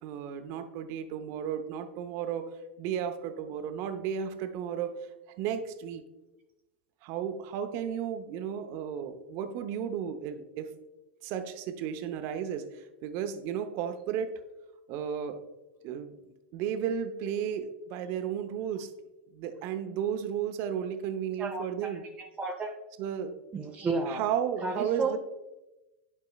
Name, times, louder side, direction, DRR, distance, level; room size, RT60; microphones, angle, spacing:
voice 1, 0.0-2.4 2.8-4.9 5.4-6.0 7.0-10.7 11.2-14.3 14.9-15.4 15.8-16.2 16.5-18.9 19.3-22.0 23.0-23.4 24.1-25.2, right 8 dB, 50° right, 8 dB, 0.7 m, -33 dB
voice 2, 21.4-22.7 23.5-24.3 24.6-25.1, right 3 dB, 20° right, 1 dB, 0.7 m, -33 dB
10.5 x 4.6 x 2.3 m, 1.0 s
hypercardioid pair, 105°, 6 cm